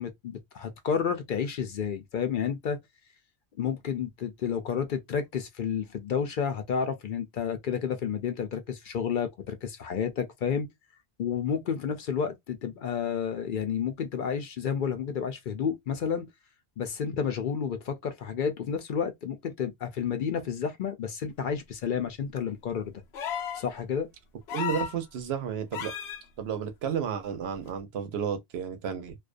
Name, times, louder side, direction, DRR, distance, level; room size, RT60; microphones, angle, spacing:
voice 1, 0.0-2.8 3.6-10.7 11.2-16.2 16.8-22.9 23.5-24.1, left 7 dB, 60° left, 0.6 m, -31 dB
sound 1, 23.1-23.7 24.5-25.0 25.7-26.2 27.7-27.8, left 8 dB, 90° left, 0.9 m, -33 dB
voice 2, 24.5-25.9 26.4-29.2, right 7 dB, 75° right, 0.9 m, -32 dB
2.4 x 2.2 x 2.4 m
omnidirectional pair, 1.1 m